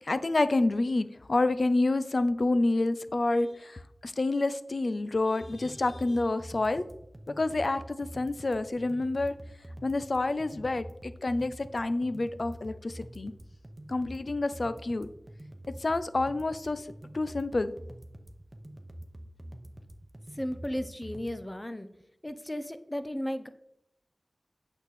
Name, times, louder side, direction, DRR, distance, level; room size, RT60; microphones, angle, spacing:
voice 1, 0.0-6.8 7.3-9.3 9.8-13.3 13.9-15.1 15.8-17.7, left 2 dB, 60° left, 13 dB, 0.5 m, -28 dB
sound 1, 5.4-21.4, right 1 dB, 25° right, 1.0 m, -46 dB
voice 2, 20.3-21.9 22.2-23.5, equal, 15° left, 10 dB, 0.7 m, -35 dB
8.8 x 6.5 x 4.2 m, 0.79 s
wide cardioid pair, 70°, 0 cm